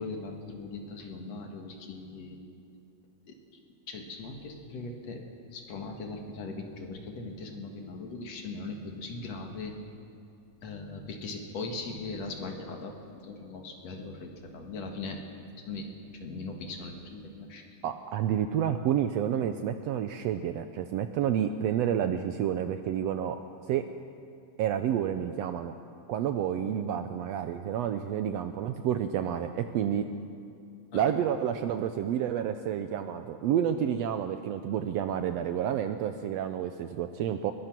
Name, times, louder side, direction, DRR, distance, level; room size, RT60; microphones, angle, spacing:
voice 1, 0.0-2.4 3.3-3.4 3.9-5.2 5.5-9.8 10.6-15.2 15.6-17.9 30.9-31.0, left 3 dB, 60° left, 3 dB, 2.8 m, -39 dB
voice 2, 17.8-23.4 23.7-23.8 24.6-25.7 26.1-30.0 30.9-37.5, right 9 dB, 75° right, 8 dB, 1.6 m, -29 dB
22.0 x 19.5 x 6.0 m, 2.5 s
omnidirectional pair, 3.5 m